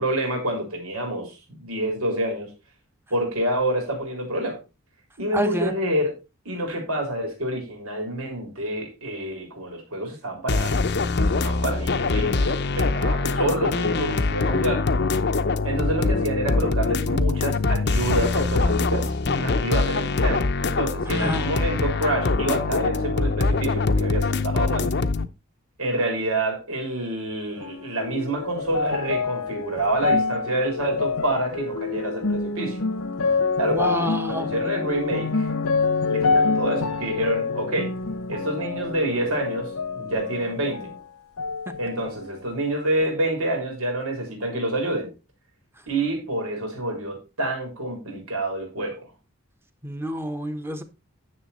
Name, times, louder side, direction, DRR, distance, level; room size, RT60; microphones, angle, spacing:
voice 1, 0.0-2.5 3.1-4.6 5.2-6.2 6.5-14.9 15.6-24.9 25.8-32.8 33.6-35.5 36.1-37.9 38.3-40.9 41.8-45.1 45.9-49.0, right 1 dB, 90° right, 3.8 m, -28 dB
voice 2, 5.3-5.7 21.1-21.4 33.6-34.5 49.8-50.8, right 1 dB, 10° right, 1.0 m, -28 dB
sound 1, 10.5-25.3, left 3 dB, 55° left, 0.7 m, -23 dB
sound 2, 27.6-41.0 41.4-42.3 43.0-43.1, left 4 dB, 85° left, 1.1 m, -27 dB
10.0 x 7.0 x 4.2 m
head